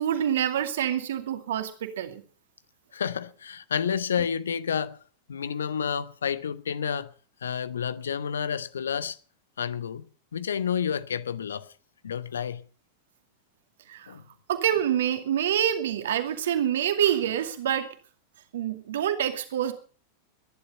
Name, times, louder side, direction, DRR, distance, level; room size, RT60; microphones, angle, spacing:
voice 1, 0.0-2.2 13.9-14.1 14.5-17.9 18.5-19.7, right 10 dB, 60° right, 2.3 m, -26 dB
voice 2, 2.9-5.0 5.3-7.1 7.4-9.2 9.6-10.1 10.3-11.7 12.0-12.6 14.1-14.2, left 7 dB, 70° left, 0.9 m, -30 dB
21.0 x 11.0 x 5.4 m
figure-of-eight pair, 90°, 0 cm